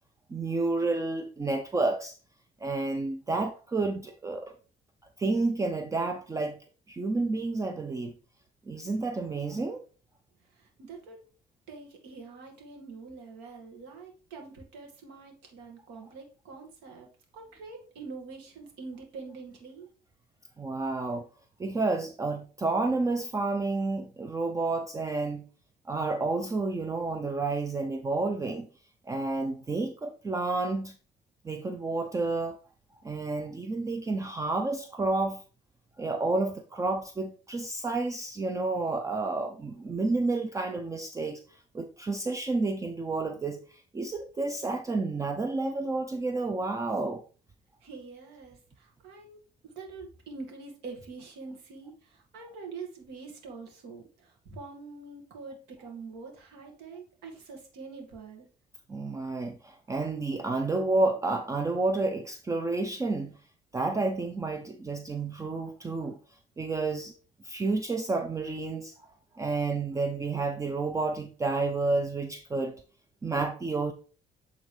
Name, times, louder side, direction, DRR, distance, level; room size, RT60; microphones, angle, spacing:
voice 1, 0.3-2.2 2.6-4.5 5.2-6.6 6.9-8.1 8.7-9.8 20.6-21.3 21.6-25.4 25.9-28.7 29.1-31.0 31.4-32.6 33.0-35.4 36.0-47.2 58.9-63.3 63.7-66.2 66.6-67.1 67.4-68.9 69.3-72.8 73.2-73.9, right 3 dB, 20° right, 0.5 m, -30 dB
voice 2, 10.4-11.2 11.7-17.1 17.3-19.9 47.8-49.4 49.6-58.5, right 4 dB, 90° right, 2.1 m, -45 dB
9.1 x 3.8 x 3.3 m
cardioid pair, 110°, 17 cm